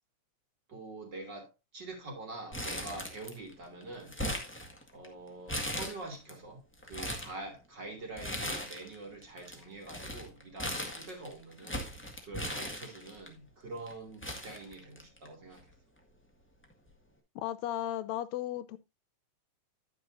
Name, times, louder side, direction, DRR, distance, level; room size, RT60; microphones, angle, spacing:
voice 1, 0.7-4.2 4.9-11.9 12.2-15.7, right 2 dB, 35° right, 3.1 m, -45 dB
Crumpling crinkling, 2.5-3.5 3.8-5.1 5.5-6.3 6.7-7.3 8.2-9.0 9.2-13.3 13.9-14.0 14.2-15.3 15.6-15.7 16.6-16.9, equal, 5° left, 0.9 m, -38 dB
voice 2, 17.4-18.8, left 12 dB, 75° left, 1.9 m, -35 dB
11.5 x 9.4 x 2.6 m
omnidirectional pair, 3.4 m